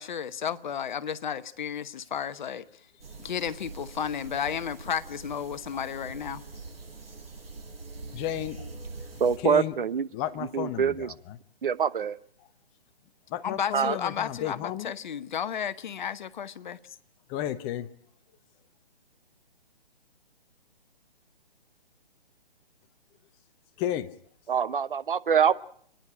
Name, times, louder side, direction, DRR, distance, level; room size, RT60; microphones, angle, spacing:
voice 1, 0.0-2.6 3.2-6.4 13.4-16.8, left 8 dB, 50° left, 1.1 m, -33 dB
sound 1, 3.0-9.4, right 3 dB, 75° right, 6.5 m, -43 dB
voice 2, 8.1-8.7 9.4-9.7 10.1-11.4 13.3-14.9 17.3-17.9 23.8-24.1, left 11 dB, 15° left, 0.8 m, -32 dB
voice 3, 9.2-10.1 10.5-11.1 11.6-12.2 13.7-14.0 24.5-25.5, right 7 dB, 60° right, 1.0 m, -25 dB
29.0 x 10.5 x 10.0 m
figure-of-eight pair, 140°, 30 cm